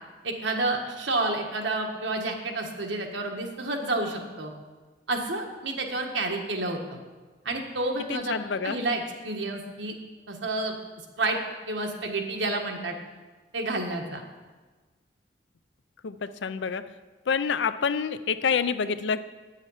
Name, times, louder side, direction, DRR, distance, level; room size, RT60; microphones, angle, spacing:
voice 1, 0.2-4.5 5.1-6.8 7.4-8.3 8.6-9.9 10.3-10.8 11.2-11.4 11.7-13.0 13.5-14.2, right 2 dB, 85° right, 2 dB, 1.4 m, -29 dB
voice 2, 8.1-8.8 16.0-16.8 17.3-19.2, left 6 dB, 80° left, 13 dB, 0.5 m, -27 dB
9.2 x 7.3 x 5.6 m, 1.3 s
head